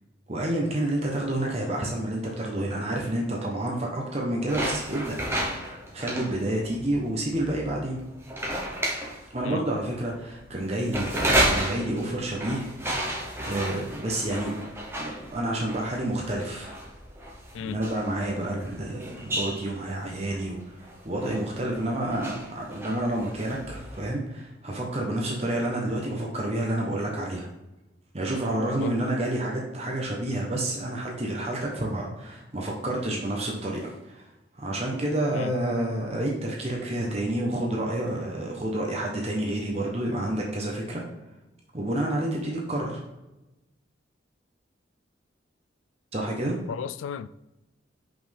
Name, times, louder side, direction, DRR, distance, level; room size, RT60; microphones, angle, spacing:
voice 1, 0.3-5.2 5.6-8.0 9.3-12.7 13.5-14.5 15.0-16.7 17.6-27.5 28.1-41.0 41.7-43.0 46.1-46.6, right 1 dB, 35° right, 0.9 m, -29 dB
sound 1, 4.5-24.0, right 1 dB, 15° right, 0.9 m, -32 dB
voice 2, 17.5-17.9 28.6-29.0 35.3-35.5 46.7-47.3, left 7 dB, 85° left, 0.3 m, -34 dB
5.7 x 5.3 x 3.4 m
head